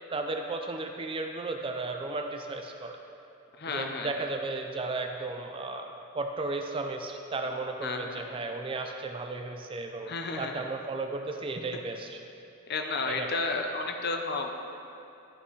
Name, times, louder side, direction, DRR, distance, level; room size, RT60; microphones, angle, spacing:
voice 1, 0.1-3.0 3.7-10.1 10.4-12.2 13.0-13.3, right 3 dB, 25° right, 4 dB, 0.4 m, -34 dB
voice 2, 3.6-4.1 7.8-8.2 10.1-10.6 12.7-14.5, left 3 dB, 50° left, 4 dB, 0.6 m, -32 dB
11.5 x 5.6 x 3.2 m, 2.8 s
head